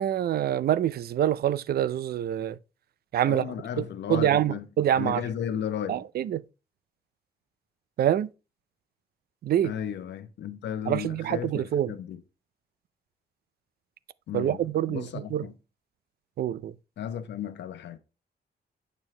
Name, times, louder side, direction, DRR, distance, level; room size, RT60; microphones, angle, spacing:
voice 1, 0.0-2.6 3.1-3.5 3.8-5.2 5.9-6.4 8.0-8.3 9.4-9.7 10.9-11.9 14.3-15.5 16.4-16.7, right 11 dB, 60° right, 0.4 m, -26 dB
voice 2, 3.2-4.7 5.0-6.1 9.6-12.2 14.3-15.5 17.0-18.0, left 9 dB, 90° left, 0.9 m, -34 dB
9.1 x 6.3 x 3.2 m
cardioid pair, 130°, 18 cm